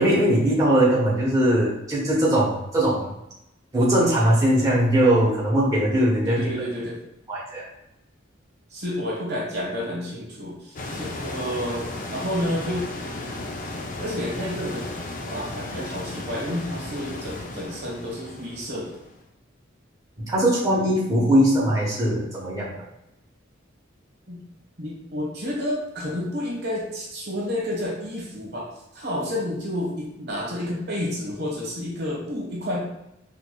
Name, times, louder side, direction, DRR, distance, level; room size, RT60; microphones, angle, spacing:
voice 1, 0.0-3.1 3.7-6.4 7.3-7.6 20.2-22.8, right 1 dB, 15° right, -7 dB, 1.0 m, -20 dB
voice 2, 6.3-7.0 8.7-13.5 14.0-14.9 15.3-18.9 24.3-24.4 24.8-28.7 28.9-32.8, left 1 dB, 60° right, -3 dB, 1.1 m, -30 dB
sound 1, 10.7-19.1, left 2 dB, 40° left, 0.4 m, -35 dB
4.8 x 2.5 x 2.2 m, 0.85 s
head